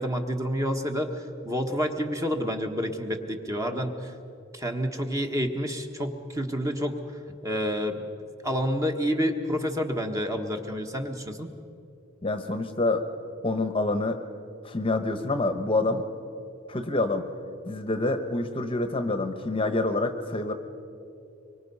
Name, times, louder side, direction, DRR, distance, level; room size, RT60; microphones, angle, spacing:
voice 1, 0.0-4.1 4.5-7.0 7.4-8.0 8.4-11.5, equal, 15° right, 4 dB, 1.3 m, -29 dB
voice 2, 12.2-13.0 13.4-14.2 14.6-16.0 16.7-17.2 17.6-20.5, left 2 dB, 25° left, 8 dB, 1.0 m, -27 dB
24.5 x 23.5 x 5.5 m, 2.6 s
head